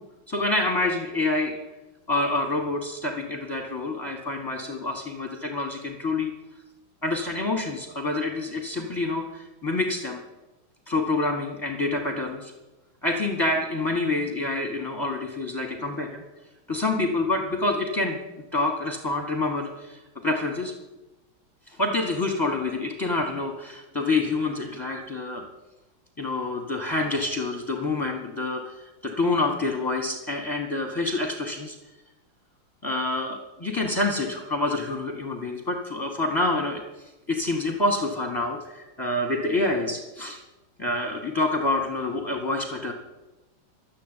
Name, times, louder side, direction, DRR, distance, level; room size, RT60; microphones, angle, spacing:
voice 1, 0.3-1.6 2.1-6.3 7.0-10.2 10.9-12.5 13.0-16.2 16.7-18.2 18.5-20.7 21.7-25.4 26.2-31.7 32.8-40.4 40.8-42.9, left 2 dB, 15° left, 2 dB, 1.2 m, -27 dB
12.5 x 7.5 x 9.0 m, 1.1 s
omnidirectional pair, 2.1 m